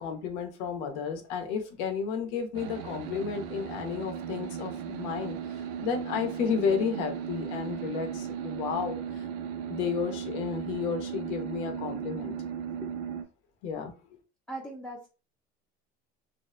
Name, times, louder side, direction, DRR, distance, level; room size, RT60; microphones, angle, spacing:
voice 1, 0.0-9.3 9.7-12.3 13.6-14.1, left 6 dB, 70° left, 0.7 m, -32 dB
sound 1, 2.5-13.2, right 8 dB, 85° right, 0.5 m, -36 dB
voice 2, 14.5-15.1, right 1 dB, 5° left, 0.3 m, -39 dB
2.8 x 2.0 x 2.3 m
cardioid pair, 160°, 19 cm